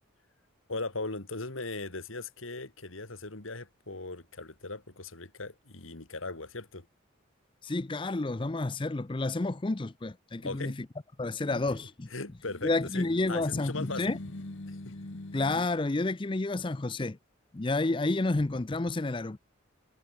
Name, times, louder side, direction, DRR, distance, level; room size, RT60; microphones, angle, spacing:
voice 1, 0.7-6.9 10.4-10.8 11.4-11.6 12.1-14.1 14.7-14.8, left 3 dB, 90° left, 2.9 m, -39 dB
voice 2, 7.6-10.7 11.2-12.1 12.6-14.2 15.3-17.2 17.5-19.4, left 2 dB, 25° left, 0.5 m, -30 dB
sound 1, 12.4-15.7, left 1 dB, 70° left, 1.4 m, -43 dB
head